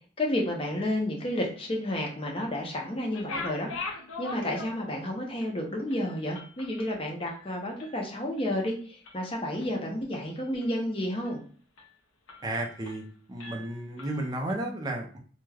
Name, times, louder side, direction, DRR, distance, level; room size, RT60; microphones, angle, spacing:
voice 1, 0.2-3.7 4.2-11.4, left 1 dB, 30° left, 0 dB, 0.6 m, -31 dB
sound 1, 3.0-5.0 5.4-5.5 5.9-8.0 8.4-8.7 9.0-9.7 10.1-10.9 11.3-11.4 11.8-11.9 12.3-13.1 13.4-14.5, left 3 dB, 90° left, 0.6 m, -42 dB
voice 2, 12.4-13.0 13.3-15.2, right 1 dB, 20° right, 1 dB, 0.4 m, -33 dB
2.3 x 2.2 x 3.2 m, 0.43 s
head